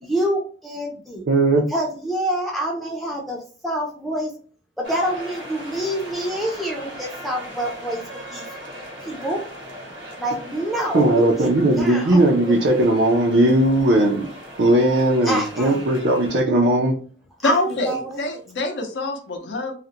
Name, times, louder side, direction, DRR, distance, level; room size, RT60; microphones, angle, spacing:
voice 1, 0.0-1.2 1.7-4.3 4.8-8.0 8.3-8.5 9.0-9.4 10.2-12.2 15.2-15.8 17.4-18.2, right 1 dB, ahead, -2 dB, 0.4 m, -27 dB
voice 2, 1.3-1.6 10.9-14.3 14.6-16.9, right 1 dB, 65° right, -1 dB, 0.5 m, -18 dB
sound 1, 4.8-16.4, equal, 85° right, 1.0 m, -38 dB
voice 3, 17.4-19.7, left 2 dB, 70° left, 4 dB, 0.6 m, -25 dB
2.4 x 2.1 x 2.8 m, 0.42 s
head